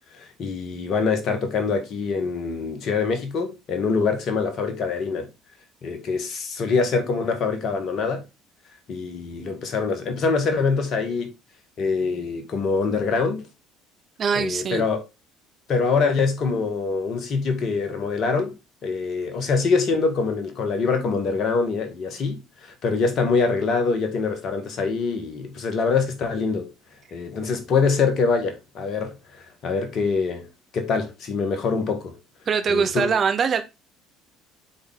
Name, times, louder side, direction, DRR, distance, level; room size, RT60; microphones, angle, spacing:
voice 1, 0.2-5.3 5.8-8.2 8.9-11.3 11.8-13.4 14.4-15.0 15.7-18.5 18.8-26.7 27.1-29.2 29.6-30.5 30.7-32.2 32.7-33.1, left 4 dB, 50° left, 1.7 m, -24 dB
voice 2, 14.2-14.9 32.5-33.6, right 6 dB, 40° right, 1.0 m, -22 dB
8.4 x 3.8 x 3.6 m
figure-of-eight pair, 60°, 0 cm